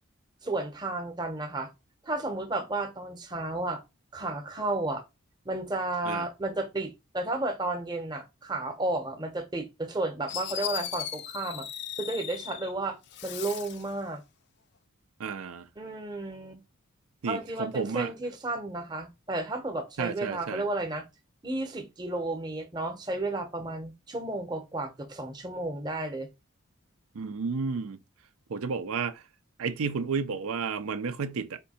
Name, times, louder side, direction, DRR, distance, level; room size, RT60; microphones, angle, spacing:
voice 1, 0.4-1.7 2.0-3.8 4.1-5.0 5.4-11.7 12.0-13.0 13.2-14.2 15.8-16.6 17.2-21.0 21.4-26.3, right 2 dB, 20° right, 0.7 m, -32 dB
Fireworks, 9.9-10.0 10.3-12.7 13.1-13.9, left 10 dB, 50° left, 0.4 m, -37 dB
voice 2, 15.2-15.7 17.2-18.1 20.0-20.6 27.2-28.0 28.5-29.2 29.6-31.6, right 5 dB, 80° right, 0.5 m, -32 dB
4.3 x 2.7 x 4.1 m
head